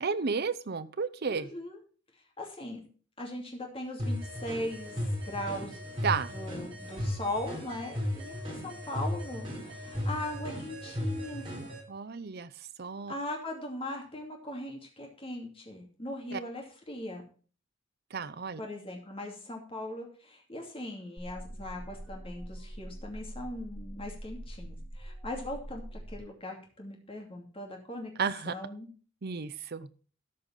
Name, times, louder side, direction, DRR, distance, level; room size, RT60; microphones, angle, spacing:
voice 1, 0.0-1.5 6.0-6.3 11.9-13.1 16.3-16.4 18.1-18.6 28.2-28.5 29.2-29.9, right 5 dB, 50° right, 14 dB, 0.6 m, -32 dB
voice 2, 1.3-1.8 2.4-2.8 3.2-5.8 6.3-11.5 13.1-17.2 18.6-28.1 28.5-28.9, left 1 dB, 30° left, 1 dB, 2.6 m, -39 dB
sound 1, 4.0-11.8, left 1 dB, 25° right, 3.7 m, -36 dB
sound 2, 21.2-26.2, right 1 dB, 10° right, 2.5 m, -43 dB
13.0 x 5.3 x 5.6 m, 0.41 s
head